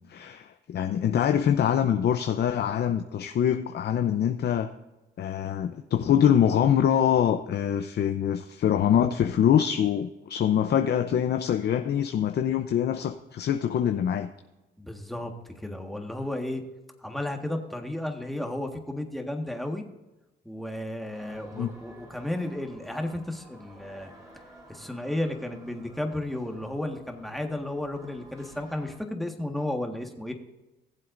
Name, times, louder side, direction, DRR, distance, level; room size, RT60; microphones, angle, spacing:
voice 1, 0.1-4.7 5.2-14.3 21.5-21.7, left 9 dB, 60° left, 7 dB, 0.7 m, -24 dB
voice 2, 14.8-16.6 17.0-19.8 20.4-24.1 24.7-30.3, left 1 dB, ahead, 3 dB, 1.6 m, -33 dB
sound 1, 21.1-29.0, right 1 dB, 20° right, 3.9 m, -52 dB
18.5 x 7.6 x 2.6 m, 1.0 s
cardioid pair, 90°, 20 cm